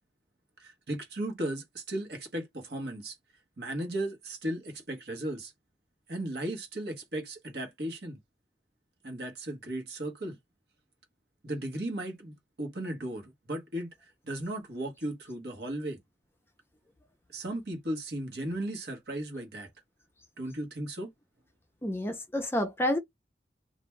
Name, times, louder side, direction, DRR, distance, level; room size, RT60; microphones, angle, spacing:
voice 1, 0.6-3.2 3.6-5.5 6.1-8.2 9.0-10.4 11.4-16.0 17.3-19.7 20.4-21.1, right 1 dB, 65° right, 1.1 m, -36 dB
voice 2, 21.8-23.0, left 1 dB, 15° left, 0.5 m, -29 dB
2.4 x 2.2 x 3.1 m
head